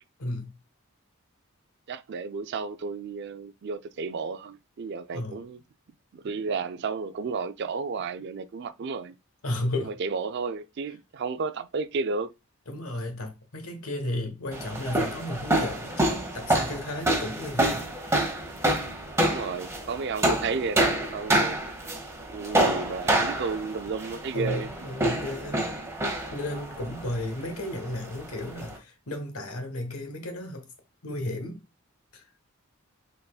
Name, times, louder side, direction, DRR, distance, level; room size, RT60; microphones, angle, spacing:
voice 1, 0.2-0.5 5.1-5.4 9.4-9.9 12.7-17.9 24.3-25.8 26.3-30.7 31.0-31.6 32.1-32.2, left 1 dB, 85° left, 1.3 m, -34 dB
voice 2, 1.9-5.6 6.1-9.2 9.8-12.3 19.2-21.6 22.3-24.7, right 4 dB, 50° right, 0.4 m, -32 dB
sound 1, 14.5-28.8, right 1 dB, 15° right, 1.0 m, -28 dB
5.5 x 4.1 x 2.3 m
head